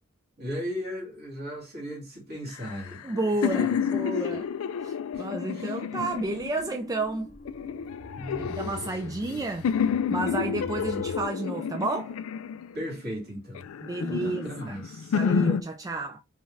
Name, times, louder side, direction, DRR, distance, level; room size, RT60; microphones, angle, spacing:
voice 1, 0.4-3.0 3.6-3.8 4.3-4.4 5.1-5.3 5.5-5.8 8.1-9.5 12.7-13.7 14.1-15.2, equal, 50° right, 2.5 m, -37 dB
sound 1, 2.5-6.8 7.5-9.3 9.6-13.0 13.6-15.6, left 7 dB, 75° left, 0.3 m, -30 dB
voice 2, 3.0-4.5 4.8-7.3 8.4-9.7 10.1-12.2 13.8-14.8 15.1-16.2, right 2 dB, 15° right, 0.3 m, -31 dB
sound 2, 6.2-11.2, left 4 dB, 40° left, 0.6 m, -44 dB
5.4 x 2.3 x 3.2 m
head